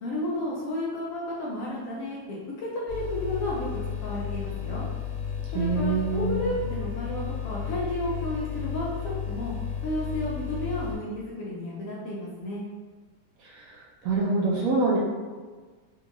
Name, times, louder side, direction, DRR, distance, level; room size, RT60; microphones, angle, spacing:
voice 1, 0.0-3.7 4.0-4.8 5.5-9.5 9.8-12.6, left 1 dB, 65° left, -5 dB, 0.9 m, -32 dB
sound 1, 2.9-10.9, left 8 dB, 20° right, 1.3 m, -33 dB
voice 2, 5.5-6.4 13.4-15.0, right 3 dB, 65° right, -4 dB, 1.0 m, -26 dB
3.6 x 2.5 x 2.9 m, 1.4 s
omnidirectional pair, 1.8 m